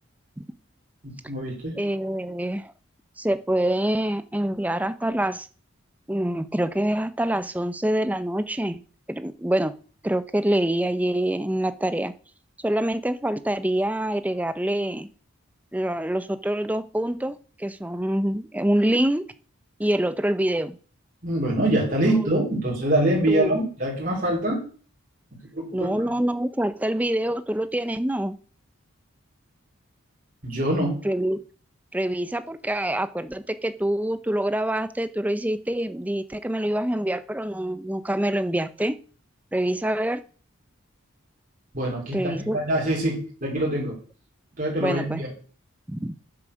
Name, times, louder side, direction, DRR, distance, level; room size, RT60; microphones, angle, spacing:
voice 1, 1.0-1.8 21.2-24.6 25.5-25.9 30.4-31.0 41.7-44.0 44.6-45.3, right 1 dB, 40° right, 3.7 m, -24 dB
voice 2, 1.8-2.7 3.2-5.5 6.1-8.8 9.1-9.7 10.0-12.1 12.6-15.1 15.7-19.3 19.8-20.8 23.3-23.7 25.7-28.4 31.0-31.4 31.9-39.0 39.5-40.2 42.1-42.6 44.8-45.2 45.9-46.2, right 1 dB, 5° right, 0.5 m, -25 dB
7.8 x 7.3 x 6.2 m
head